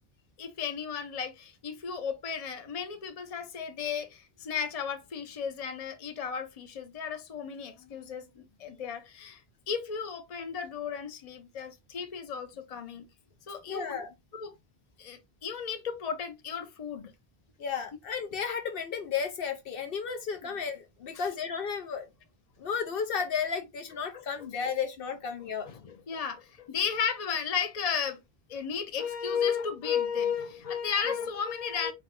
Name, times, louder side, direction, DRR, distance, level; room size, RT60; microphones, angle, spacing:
voice 1, 0.4-13.1 13.5-14.0 14.3-14.5 15.0-17.1 24.1-24.3 25.6-28.2 28.5-31.9, left 7 dB, 40° left, 0.7 m, -34 dB
voice 2, 13.7-14.1 17.6-22.1 22.6-25.7, left 6 dB, 65° left, 0.8 m, -33 dB
4.8 x 2.2 x 3.5 m
omnidirectional pair, 1.0 m